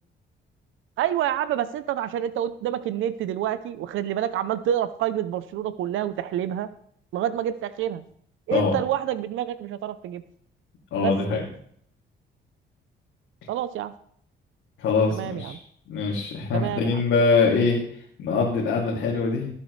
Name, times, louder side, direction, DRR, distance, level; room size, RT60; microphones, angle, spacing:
voice 1, 1.0-6.7 7.1-8.0 8.5-10.2 11.0-11.4 13.5-13.9 15.1-15.6 16.5-17.0, right 11 dB, 85° right, 13 dB, 0.7 m, -28 dB
voice 2, 10.9-11.5 14.8-15.6 15.9-19.5, left 4 dB, 85° left, -5 dB, 2.8 m, -23 dB
18.5 x 8.4 x 3.3 m, 0.63 s
cardioid pair, 90°, 20 cm